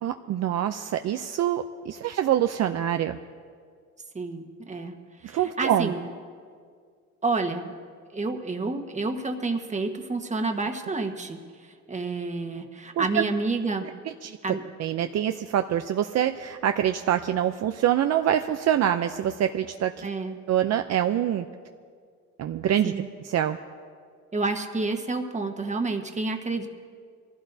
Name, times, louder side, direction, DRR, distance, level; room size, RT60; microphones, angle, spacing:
voice 1, 0.0-3.2 5.3-5.9 13.0-13.2 14.2-14.4 14.8-20.1 20.5-21.4 22.4-22.9 23.2-23.6, right 10 dB, 60° right, 7 dB, 0.5 m, -25 dB
voice 2, 4.1-4.9 5.2-6.0 7.2-7.7 8.1-11.4 11.9-13.9 14.4-14.6 20.0-20.4 22.8-23.1 24.3-26.7, right 3 dB, 25° right, 5 dB, 1.3 m, -29 dB
23.0 x 15.5 x 2.7 m, 2.1 s
cardioid pair, 90°, 30 cm